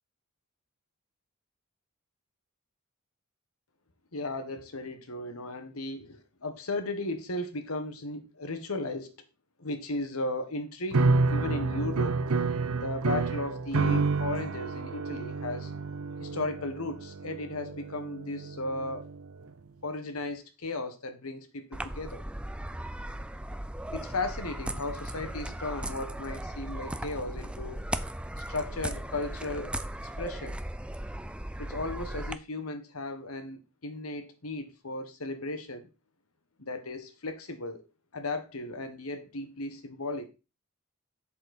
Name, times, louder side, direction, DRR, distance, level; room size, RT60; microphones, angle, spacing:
voice 1, 4.1-9.1 9.6-12.2 12.8-15.7 16.2-19.1 19.8-22.2 23.9-27.8 28.5-30.6 31.6-35.9 36.6-37.8 38.1-40.3, left 2 dB, 85° left, 1.6 m, -36 dB
sound 1, 10.9-19.2, right 3 dB, 80° right, 0.7 m, -29 dB
sound 2, 21.7-32.3, right 1 dB, 5° right, 0.4 m, -37 dB
7.7 x 7.2 x 4.3 m
head